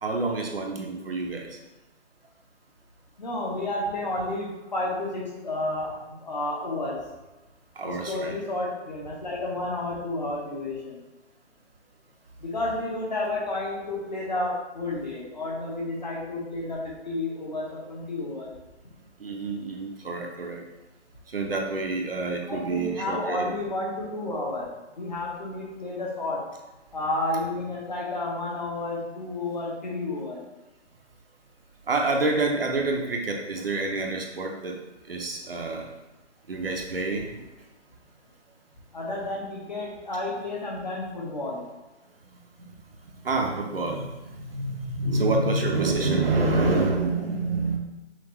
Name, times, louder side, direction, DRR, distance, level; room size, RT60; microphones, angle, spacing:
voice 1, 0.0-1.5 7.8-8.4 19.2-20.6 21.3-23.5 31.9-34.8 35.1-35.9 36.5-37.4 42.6-42.7 43.2-47.8, right 3 dB, 55° right, 1 dB, 0.7 m, -27 dB
voice 2, 3.2-7.0 7.8-11.0 12.4-18.5 22.5-26.4 26.9-30.4 38.9-41.6, left 2 dB, 40° left, -3 dB, 0.9 m, -31 dB
5.8 x 2.5 x 3.0 m, 1.0 s
hypercardioid pair, 180°, 35 cm